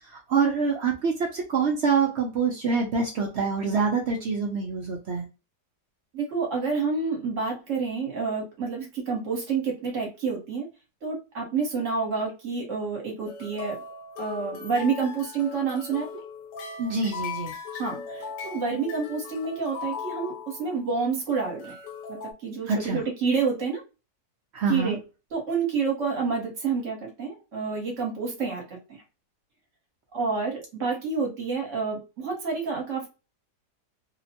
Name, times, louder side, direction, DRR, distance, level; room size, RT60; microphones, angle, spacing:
voice 1, 0.1-5.2 16.8-17.5 22.7-23.0 24.5-24.9, right 5 dB, 75° right, 0 dB, 0.6 m, -26 dB
voice 2, 6.1-10.7 11.0-13.8 14.2-16.2 17.7-21.8 22.1-23.8 24.7-25.0 25.3-29.0 30.1-33.1, right 5 dB, 50° right, 0 dB, 1.2 m, -29 dB
sound 1, 13.3-21.0 21.3-22.3, left 5 dB, 90° left, 1.2 m, -38 dB
2.9 x 2.1 x 2.7 m, 0.29 s
omnidirectional pair, 1.8 m